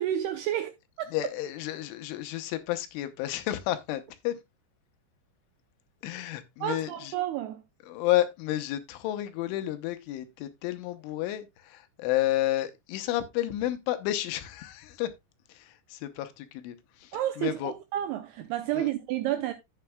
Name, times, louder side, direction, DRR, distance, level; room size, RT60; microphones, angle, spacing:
voice 1, 0.0-1.1 6.6-7.6 17.1-19.5, right 12 dB, 80° right, 2.3 m, -30 dB
voice 2, 1.1-4.4 6.0-7.1 7.9-15.1 15.9-16.8 17.4-17.7 18.8-18.9, left 14 dB, 90° left, 3.4 m, -31 dB
11.5 x 8.8 x 2.3 m
omnidirectional pair, 5.4 m